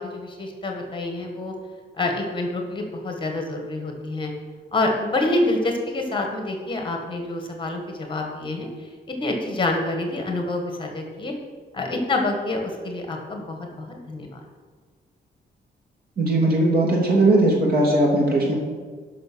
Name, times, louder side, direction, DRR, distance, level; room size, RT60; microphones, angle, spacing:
voice 1, 0.0-1.5 2.0-4.3 4.7-11.3 11.7-14.4, left 2 dB, 30° left, 3 dB, 1.7 m, -27 dB
voice 2, 16.2-18.6, right 2 dB, 60° right, -2 dB, 3.1 m, -19 dB
12.0 x 6.0 x 6.3 m, 1.5 s
wide cardioid pair, 135°, 17 cm